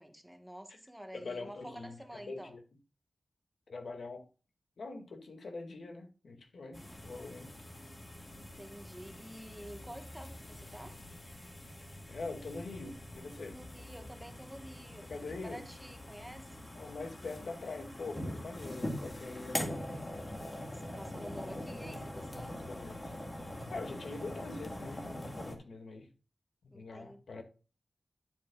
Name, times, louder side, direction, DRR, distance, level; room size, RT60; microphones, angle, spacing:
voice 1, 0.0-2.5 8.3-11.0 13.5-16.6 20.7-22.6 26.7-27.4, equal, 5° right, 1.4 m, -49 dB
voice 2, 1.1-2.0 2.3-2.6 3.7-4.3 4.8-7.5 12.1-13.6 15.0-15.6 16.7-19.9 21.3-21.8 22.3-23.1 23.4-26.1 26.7-27.4, left 3 dB, 80° left, 2.2 m, -44 dB
sound 1, 6.7-25.6, left 1 dB, 25° left, 1.9 m, -43 dB
10.5 x 8.4 x 2.4 m
wide cardioid pair, 130°, 0 cm